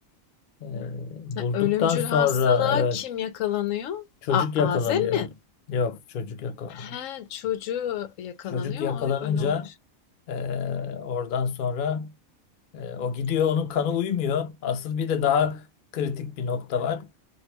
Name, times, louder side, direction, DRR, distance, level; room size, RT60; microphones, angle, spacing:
voice 1, 0.6-3.0 4.3-5.2 5.7-7.0 8.5-9.7 10.3-12.1 12.7-15.6 15.9-17.1, left 6 dB, 55° left, 0.6 m, -26 dB
voice 2, 1.4-5.3 6.7-9.7, left 10 dB, 75° left, 0.9 m, -29 dB
3.2 x 2.6 x 2.9 m
omnidirectional pair, 1.4 m